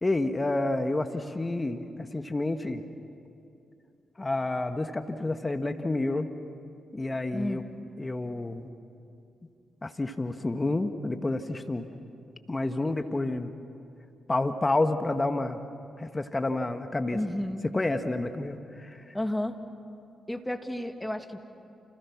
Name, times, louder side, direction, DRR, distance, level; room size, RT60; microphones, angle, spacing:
voice 1, 0.0-2.8 4.2-6.3 6.9-7.6 8.0-8.7 9.8-11.9 12.5-13.5 14.3-15.6 16.0-17.2 17.6-19.1, left 2 dB, 30° left, 8 dB, 1.7 m, -29 dB
voice 2, 7.3-7.7 17.1-17.6 19.1-19.6 20.3-21.4, left 1 dB, 10° left, 6 dB, 2.5 m, -32 dB
30.0 x 29.0 x 6.2 m, 2.5 s
hypercardioid pair, 40°, 0 cm